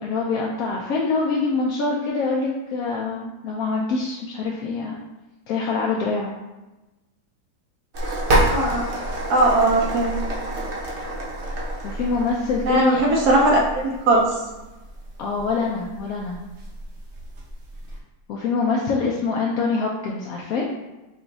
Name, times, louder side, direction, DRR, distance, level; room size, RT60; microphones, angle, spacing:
voice 1, 0.0-4.9 5.5-6.3 11.5-11.6 11.8-13.0 15.2-16.4 18.3-20.7, left 4 dB, 70° left, -2 dB, 0.9 m, -25 dB
sound 1, 7.9-18.0, right 1 dB, 50° right, 1.0 m, -28 dB
voice 2, 8.5-8.8 9.3-10.1 12.6-14.2, right 1 dB, 75° right, -2 dB, 1.1 m, -19 dB
4.9 x 2.3 x 3.9 m, 1.0 s
omnidirectional pair, 1.7 m